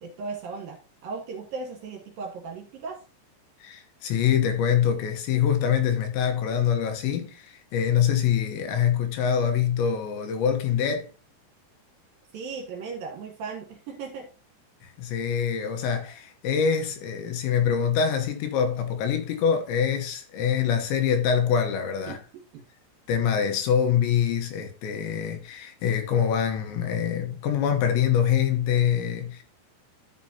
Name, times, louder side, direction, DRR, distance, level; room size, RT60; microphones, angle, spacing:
voice 1, 0.0-3.0 12.3-14.3 22.1-22.2, right 4 dB, 65° right, 2.7 m, -36 dB
voice 2, 3.6-11.1 14.8-22.2 23.1-29.4, left 8 dB, 75° left, 3.2 m, -25 dB
13.0 x 6.1 x 2.8 m
omnidirectional pair, 5.6 m